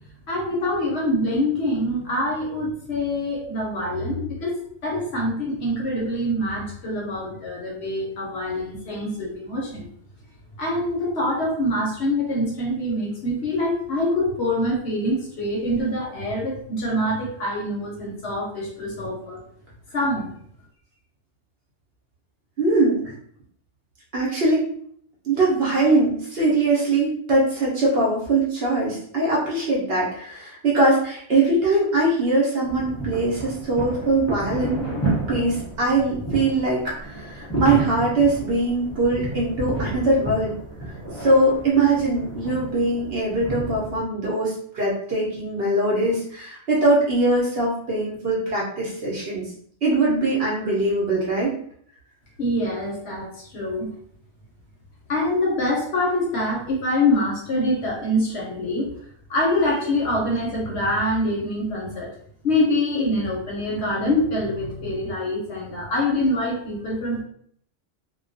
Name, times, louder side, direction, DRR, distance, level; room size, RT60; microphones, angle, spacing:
voice 1, 0.3-9.9 10.6-19.4 19.9-20.3 52.4-53.3 53.5-53.9 55.1-58.9 59.3-62.1 62.4-67.2, left 1 dB, 60° left, -2 dB, 0.8 m, -25 dB
voice 2, 22.6-23.1 24.1-24.6 25.2-34.8 35.3-40.5 41.2-49.5 49.8-51.6, right 2 dB, 55° right, -5 dB, 0.8 m, -22 dB
sound 1, 32.7-44.0, right 2 dB, 20° left, 0.4 m, -31 dB
2.2 x 2.2 x 2.5 m, 0.62 s
omnidirectional pair, 1.4 m